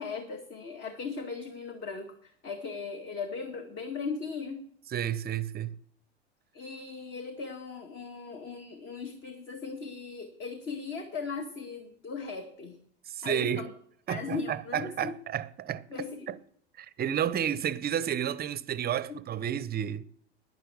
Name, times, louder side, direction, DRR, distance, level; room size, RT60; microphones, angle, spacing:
voice 1, 0.0-4.7 6.5-12.8 13.2-13.7 14.1-15.2 15.9-16.4 19.1-19.2, left 4 dB, 35° left, 1.9 m, -38 dB
voice 2, 4.9-5.8 13.1-13.7 14.1-15.8 16.3-16.4 16.8-20.0, right 9 dB, 30° right, 0.8 m, -31 dB
11.5 x 9.9 x 7.4 m
hypercardioid pair, 80°, 32 cm